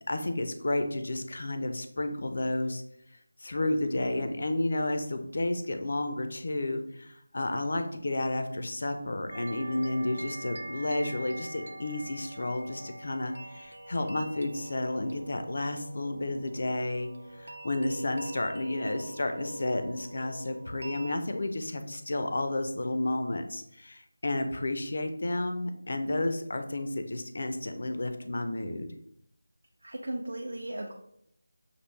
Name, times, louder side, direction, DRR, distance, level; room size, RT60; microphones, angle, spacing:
voice 1, 0.1-2.8 3.4-28.9, left 2 dB, 40° left, 7 dB, 0.4 m, -31 dB
sound 1, 9.3-21.2, right 2 dB, 45° right, 0.3 m, -44 dB
voice 2, 29.8-30.9, right 1 dB, 80° right, 0 dB, 0.6 m, -36 dB
6.6 x 2.5 x 3.1 m, 0.72 s
figure-of-eight pair, 180°, 0 cm